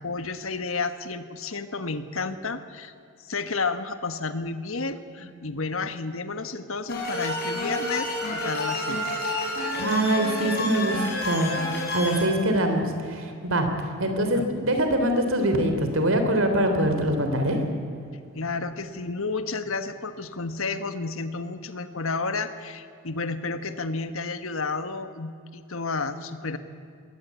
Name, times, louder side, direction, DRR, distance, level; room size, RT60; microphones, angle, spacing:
voice 1, 0.0-2.9 3.2-9.2 14.3-14.5 18.3-26.6, left 4 dB, 65° left, 10 dB, 1.4 m, -31 dB
sound 1, 6.9-12.2, left 2 dB, 45° left, 6.6 m, -29 dB
voice 2, 9.8-11.5 11.9-13.7 14.0-17.6, right 1 dB, 65° right, 5 dB, 3.5 m, -23 dB
21.5 x 18.0 x 8.4 m, 2.4 s
head